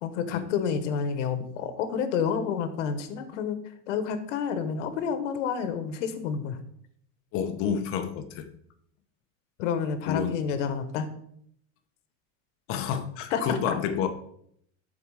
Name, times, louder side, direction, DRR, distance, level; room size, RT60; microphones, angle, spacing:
voice 1, 0.0-3.6 3.9-6.6 9.6-11.1 13.3-13.6, left 6 dB, 80° left, 10 dB, 1.2 m, -29 dB
voice 2, 7.3-8.5 10.1-10.4 12.7-14.1, left 7 dB, 35° left, 8 dB, 0.8 m, -29 dB
12.0 x 4.7 x 4.8 m, 0.69 s
supercardioid pair, 160°, 36 cm